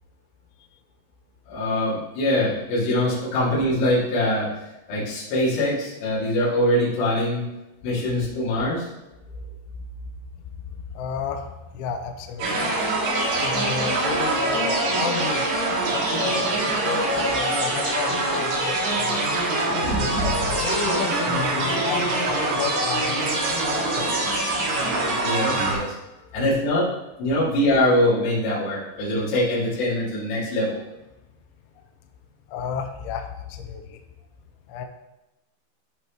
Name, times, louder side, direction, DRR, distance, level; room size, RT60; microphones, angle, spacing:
voice 1, 1.5-4.5 4.9-7.4 7.8-8.9 25.2-25.9 26.3-26.9 27.2-30.8, left 1 dB, 65° left, -9 dB, 4.5 m, -23 dB
voice 2, 10.9-12.8 13.1-15.5 15.9-19.3 19.7-20.1 20.6-23.4 23.8-24.3 26.2-26.4 32.5-34.0 34.7-34.9, left 6 dB, 90° left, 4 dB, 2.3 m, -32 dB
sound 1, 12.4-25.7, right 2 dB, 65° right, 3.6 m, -24 dB
13.5 x 4.7 x 3.0 m, 0.99 s
omnidirectional pair, 5.3 m